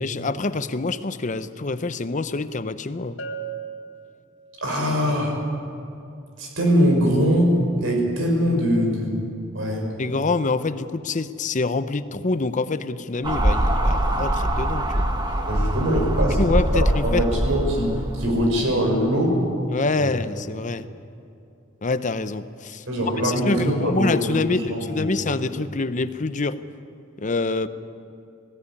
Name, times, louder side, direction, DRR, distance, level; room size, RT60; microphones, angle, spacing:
voice 1, 0.0-3.2 10.0-15.1 16.4-17.2 19.7-20.9 21.8-26.6 27.2-27.7, left 3 dB, 35° left, 13 dB, 0.7 m, -26 dB
Bell, 3.2-4.8, right 5 dB, 75° left, 1.6 m, -36 dB
voice 2, 4.6-5.3 6.4-7.5 7.8-9.2 9.5-9.9 15.5-16.4 16.7-19.4 20.0-20.1 22.9-25.2, equal, 65° right, 1 dB, 5.4 m, -22 dB
sound 1, 13.2-18.5, right 1 dB, 20° right, 1.3 m, -23 dB
19.5 x 16.0 x 9.7 m, 2.6 s
head